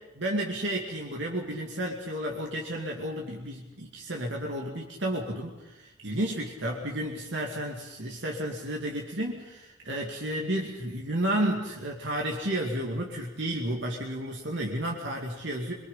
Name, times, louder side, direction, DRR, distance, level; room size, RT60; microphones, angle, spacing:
voice 1, 0.2-15.7, right 1 dB, 60° right, -1 dB, 2.6 m, -32 dB
25.0 x 23.0 x 5.8 m, 1.0 s
head